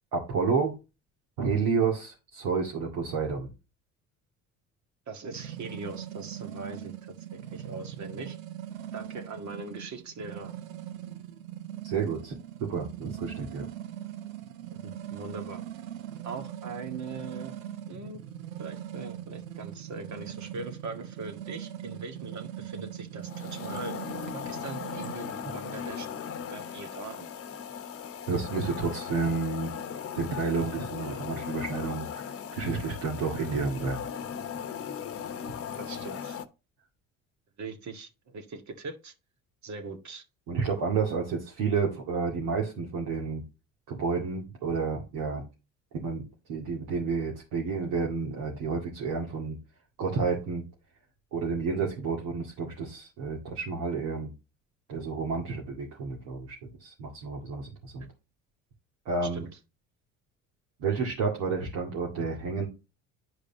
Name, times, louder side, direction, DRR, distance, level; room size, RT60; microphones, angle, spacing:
voice 1, 0.1-0.7 1.4-3.5 11.8-12.4 12.7-13.7 28.3-29.7 30.1-34.0 40.5-43.4 43.9-45.4 45.9-46.2 46.5-49.6 50.0-50.6 51.3-54.3 54.9-58.1 59.1-59.5 60.8-62.7, right 5 dB, 65° right, 2.2 m, -30 dB
voice 2, 5.1-6.9 7.3-8.4 8.9-10.5 14.8-15.6 16.2-17.5 17.8-18.2 18.6-24.0 24.3-26.1 26.5-27.3 35.8-36.4 37.6-39.1 39.6-40.2 58.0-58.1 59.2-59.5, right 3 dB, 45° right, 1.9 m, -41 dB
sound 1, 5.3-25.1, right 11 dB, 90° right, 0.6 m, -41 dB
sound 2, 23.2-36.4, left 7 dB, 35° left, 1.1 m, -38 dB
11.0 x 5.0 x 2.8 m
hypercardioid pair, 60°, 39 cm